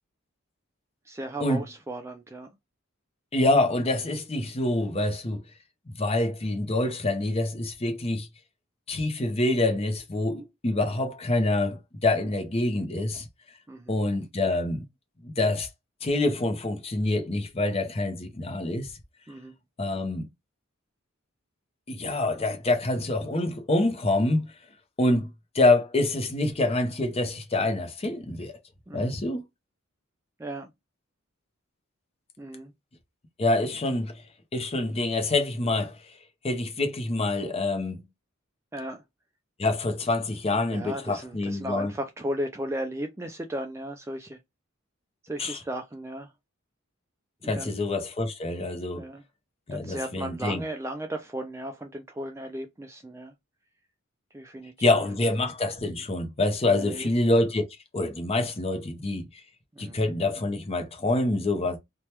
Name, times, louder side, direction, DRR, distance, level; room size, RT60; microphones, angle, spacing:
voice 1, 1.1-2.5 13.7-14.0 19.3-19.5 28.9-29.1 30.4-30.7 32.4-32.7 38.7-39.0 40.7-44.4 45.2-46.3 47.6-47.8 48.9-49.2 49.7-53.3 54.3-54.7 56.6-57.1 59.8-60.0, right 1 dB, 15° right, 0.3 m, -35 dB
voice 2, 3.3-5.4 6.0-8.3 8.9-13.3 13.9-14.9 15.2-15.7 16.0-18.9 19.8-20.3 21.9-24.5 25.0-28.5 28.9-29.4 33.4-34.1 34.5-36.0 36.4-38.0 39.6-41.9 45.4-45.6 47.4-49.1 49.7-50.6 54.8-57.7 57.9-59.2 59.8-61.8, left 2 dB, 30° left, 0.6 m, -26 dB
2.9 x 2.2 x 3.1 m
head